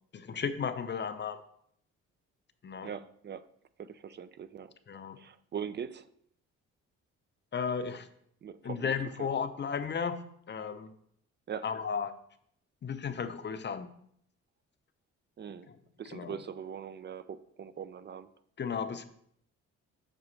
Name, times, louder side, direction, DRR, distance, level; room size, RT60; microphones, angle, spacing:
voice 1, 0.1-1.4 2.6-2.9 4.9-5.2 7.5-8.1 8.6-10.2 10.5-10.9 11.6-12.1 12.8-13.9 15.7-15.8 16.1-16.4 18.6-19.0, left 6 dB, 35° left, 10 dB, 0.6 m, -34 dB
voice 2, 2.8-3.4 3.8-4.7 5.2-6.1 8.4-8.9 9.2-9.3 11.5-11.6 15.4-15.7 16.0-18.3, right 7 dB, 35° right, 13 dB, 0.4 m, -41 dB
7.5 x 6.2 x 3.2 m, 0.68 s
cardioid pair, 90°, 30 cm